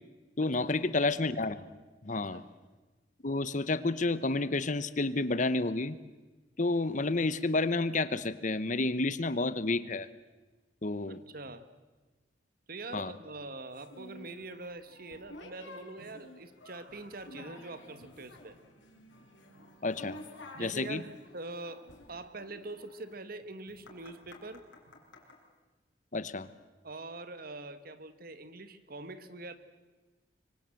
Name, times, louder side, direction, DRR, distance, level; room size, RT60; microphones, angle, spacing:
voice 1, 0.4-1.7 2.0-2.4 3.2-6.0 6.6-10.1 10.8-11.2 12.9-13.1 19.8-20.2 20.6-21.0 26.1-26.5, left 2 dB, 45° left, 15 dB, 1.0 m, -30 dB
voice 2, 2.1-2.4 11.1-11.7 12.7-18.6 20.5-24.7 26.8-29.5, right 2 dB, 50° right, 12 dB, 1.6 m, -44 dB
sound 1, 13.7-25.4, left 1 dB, 90° left, 5.0 m, -52 dB
25.0 x 24.5 x 7.8 m, 1.2 s
head